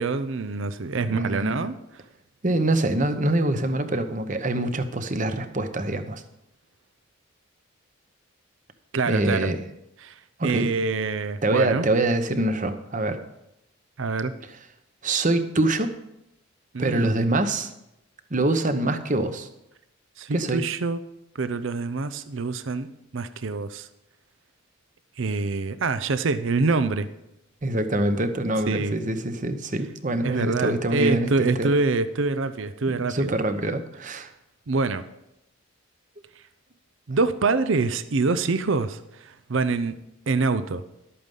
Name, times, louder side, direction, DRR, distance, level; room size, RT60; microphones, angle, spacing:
voice 1, 0.0-1.7 8.9-9.5 10.0-10.1 10.4-11.9 14.0-14.3 16.7-17.1 20.2-21.0 21.4-23.9 25.2-27.1 28.7-28.9 30.2-33.3 34.7-35.0 37.1-40.0 40.3-40.8, right 3 dB, 65° right, 13 dB, 0.6 m, -25 dB
voice 2, 1.1-1.7 2.4-6.2 9.1-9.6 10.4-10.7 11.4-13.2 15.0-15.9 16.8-17.7 18.3-19.5 20.3-20.6 27.6-31.3 31.6-31.7 33.0-34.3, right 2 dB, 35° right, 9 dB, 0.9 m, -24 dB
12.0 x 8.6 x 5.5 m, 0.85 s
head